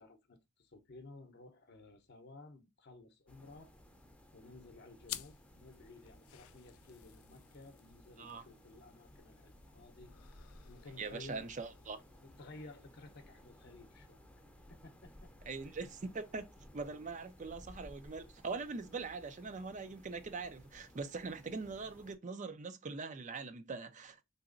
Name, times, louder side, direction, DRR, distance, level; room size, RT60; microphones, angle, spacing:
voice 1, 0.0-3.7 4.3-10.1 10.7-11.5 12.2-14.3 14.7-15.3 15.7-15.8, left 2 dB, 50° left, 0.7 m, -55 dB
sound 1, 3.3-22.2, left 1 dB, 5° left, 0.6 m, -59 dB
sound 2, 5.0-14.0, left 14 dB, 85° left, 0.3 m, -54 dB
voice 2, 11.0-12.0 15.5-16.5 16.7-24.2, right 4 dB, 35° right, 0.5 m, -42 dB
3.9 x 2.9 x 2.5 m
head